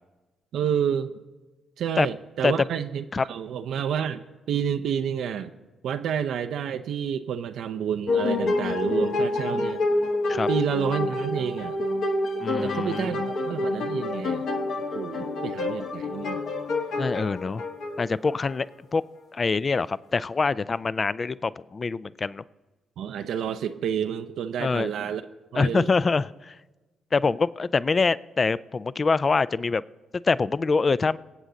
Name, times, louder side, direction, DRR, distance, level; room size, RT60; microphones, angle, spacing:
voice 1, 0.5-1.1 1.8-5.5 5.8-9.8 10.5-11.8 12.6-14.5 14.9-16.4 23.0-25.2 25.5-25.9, right 8 dB, 65° right, 8 dB, 0.6 m, -29 dB
sound 1, 8.1-18.5, left 2 dB, 65° left, 1.6 m, -28 dB
voice 2, 12.4-13.2 17.0-17.6 18.0-18.7 18.9-19.0 19.3-22.4 24.6-24.9 25.5-26.6 27.1-29.8 30.2-31.2, left 4 dB, 40° left, 18 dB, 0.4 m, -25 dB
24.0 x 8.0 x 3.9 m, 1.2 s
hypercardioid pair, 40°, 0 cm